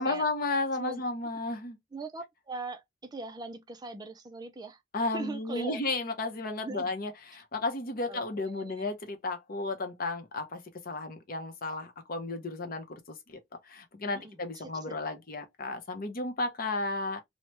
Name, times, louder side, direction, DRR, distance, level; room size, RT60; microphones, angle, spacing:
voice 1, 0.0-1.8 4.9-10.6 10.8-13.4 13.6-17.2, left 2 dB, 50° left, 0.7 m, -33 dB
voice 2, 1.9-4.8 5.1-5.8 6.6-6.9 8.1-8.9 14.1-15.0, right 3 dB, 20° right, 0.4 m, -41 dB
3.0 x 2.1 x 3.0 m
head